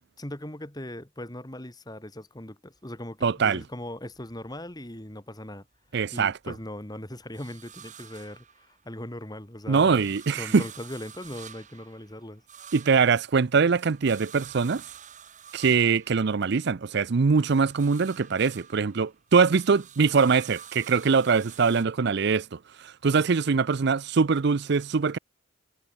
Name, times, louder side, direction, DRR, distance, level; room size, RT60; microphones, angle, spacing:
voice 1, 0.2-5.6 6.1-10.0 10.4-12.4, left 1 dB, 20° left, 2.5 m, -39 dB
sound 1, 2.8-5.1 5.5-9.2 9.5-17.0 17.3-21.9, right 8 dB, 35° right, 3.7 m, -49 dB
voice 2, 3.2-3.6 5.9-6.4 9.7-10.6 12.7-14.8 15.5-25.2, right 5 dB, 55° right, 0.5 m, -23 dB
head